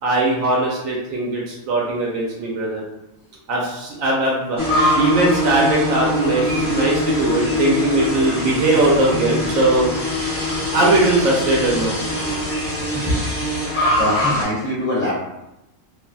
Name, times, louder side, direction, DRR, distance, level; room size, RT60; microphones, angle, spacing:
voice 1, 0.0-2.8 3.5-4.6 4.9-9.9 10.7-12.0, right 2 dB, 75° right, -3 dB, 1.0 m, -19 dB
sound 1, 4.6-14.4, left 1 dB, 20° left, 0.4 m, -22 dB
voice 2, 12.8-15.2, left 1 dB, 70° left, -6 dB, 1.0 m, -26 dB
3.2 x 2.3 x 2.3 m, 0.92 s
omnidirectional pair, 1.4 m